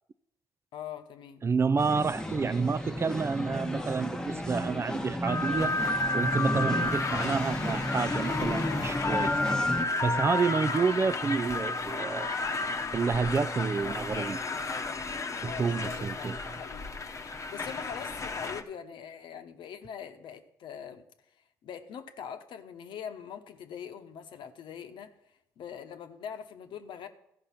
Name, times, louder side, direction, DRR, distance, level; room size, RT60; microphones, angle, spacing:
voice 1, 0.7-1.4 15.5-16.9 17.5-21.0 21.6-25.1 25.6-27.1, left 8 dB, 65° left, 0.9 m, -42 dB
voice 2, 1.4-5.7 6.1-9.4 10.0-12.3 12.9-14.4 15.4-16.5, right 5 dB, 30° right, 0.4 m, -29 dB
sound 1, 1.8-9.9, left 1 dB, 5° left, 1.0 m, -33 dB
sound 2, 5.2-18.6, left 3 dB, 35° left, 0.9 m, -32 dB
14.0 x 5.2 x 5.7 m
supercardioid pair, 60°, 9 cm